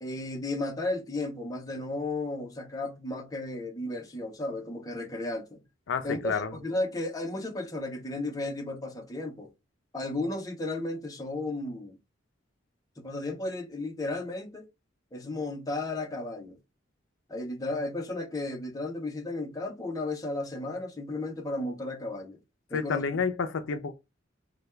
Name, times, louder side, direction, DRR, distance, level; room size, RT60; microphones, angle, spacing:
voice 1, 0.0-5.6 6.0-9.5 9.9-12.0 13.0-14.6 15.1-16.6 17.3-22.4 22.7-23.0, left 2 dB, 20° left, 0.6 m, -34 dB
voice 2, 5.9-6.5 22.7-23.9, left 5 dB, 75° left, 0.4 m, -29 dB
3.3 x 2.2 x 3.1 m
head